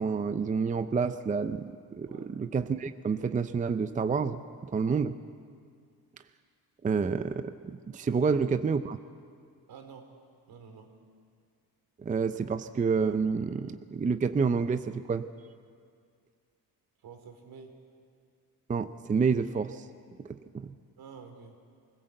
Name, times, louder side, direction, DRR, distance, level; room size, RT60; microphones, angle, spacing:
voice 1, 0.0-4.4 4.7-5.2 6.8-9.0 12.0-15.2 18.7-19.9 20.3-20.7, right 5 dB, 20° right, 11 dB, 0.5 m, -29 dB
voice 2, 9.7-10.0 10.5-10.9 17.0-17.7 21.0-21.5, right 6 dB, 70° right, 5 dB, 3.0 m, -48 dB
24.0 x 16.5 x 7.9 m, 2.2 s
cardioid pair, 115°, 37 cm